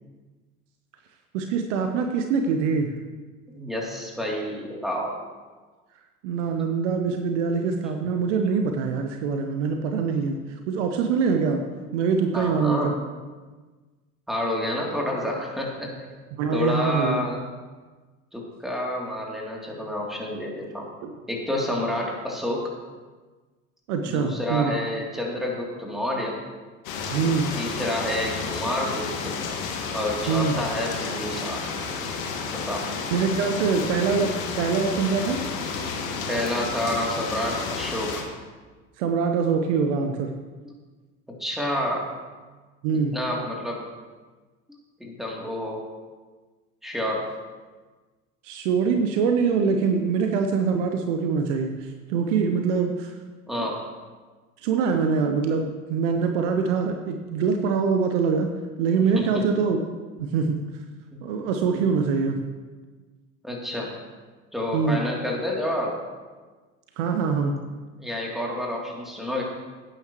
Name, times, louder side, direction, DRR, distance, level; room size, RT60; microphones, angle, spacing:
voice 1, 1.3-2.9 6.2-11.6 11.9-12.9 16.4-17.3 21.0-21.1 23.9-24.7 27.1-27.5 30.3-30.5 33.1-35.4 39.0-40.3 42.8-43.2 48.4-53.1 53.6-53.7 54.6-58.5 58.8-59.8 60.2-60.6 61.2-62.4 64.7-65.0 67.0-67.5, right 5 dB, 55° right, 5 dB, 1.1 m, -24 dB
voice 2, 3.5-5.1 8.1-8.3 12.3-12.9 14.3-15.9 16.5-17.4 18.3-20.9 21.3-22.6 24.0-26.3 27.5-29.3 29.9-31.7 32.4-32.9 36.3-38.1 41.4-42.1 43.1-43.8 45.0-45.8 46.8-47.3 53.5-53.8 59.1-59.4 61.1-61.2 63.4-63.9 64.5-65.9 68.0-69.4, left 1 dB, ahead, -2 dB, 2.9 m, -29 dB
sound 1, 26.8-38.2, left 5 dB, 65° left, 1.8 m, -31 dB
17.0 x 9.2 x 3.1 m, 1.3 s
figure-of-eight pair, 70°, 44 cm